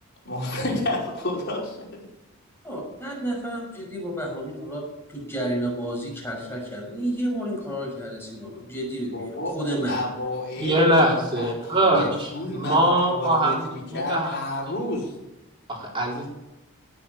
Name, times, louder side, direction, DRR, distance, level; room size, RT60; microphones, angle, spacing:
voice 1, 0.3-2.0 9.1-11.0 11.4-15.1, left 1 dB, 50° left, -3 dB, 5.3 m, -30 dB
voice 2, 2.6-4.8 5.1-10.0, right 1 dB, 10° left, -2 dB, 6.3 m, -31 dB
voice 3, 10.6-13.6 13.9-14.4 15.7-16.3, right 1 dB, 25° right, -2 dB, 4.2 m, -22 dB
18.0 x 7.6 x 8.9 m, 0.93 s
head